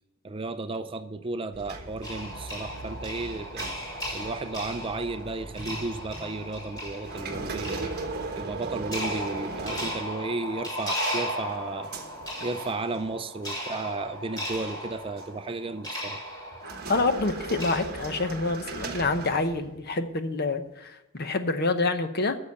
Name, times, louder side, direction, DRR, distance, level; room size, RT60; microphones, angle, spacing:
voice 1, 0.2-3.7 4.1-7.9 8.4-11.9 12.4-16.2, right 3 dB, 25° right, 10 dB, 0.4 m, -34 dB
sound 1, 1.5-10.5 11.0-13.1 13.4-13.7 14.4-15.3 16.5-19.9, right 3 dB, 45° right, 1.2 m, -38 dB
sound 2, 2.0-17.8, equal, 20° left, 3.3 m, -36 dB
voice 2, 16.9-22.4, left 3 dB, 45° left, 9 dB, 0.8 m, -27 dB
9.8 x 7.0 x 8.2 m, 0.92 s
head